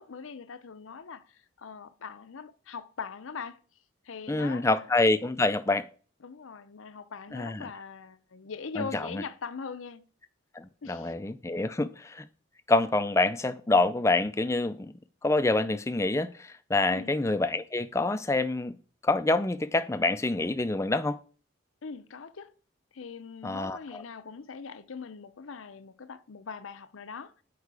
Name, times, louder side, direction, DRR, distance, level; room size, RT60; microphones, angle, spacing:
voice 1, 0.0-3.6 4.0-4.9 6.2-10.0 10.8-11.1 16.9-17.2 21.8-22.5 22.9-27.3, left 5 dB, 85° left, 0.6 m, -41 dB
voice 2, 4.3-5.8 7.3-7.7 8.8-9.2 10.6-12.2 12.7-14.9 15.2-18.7 19.0-21.2 23.4-24.0, left 2 dB, 15° left, 0.3 m, -27 dB
8.3 x 4.7 x 4.7 m
head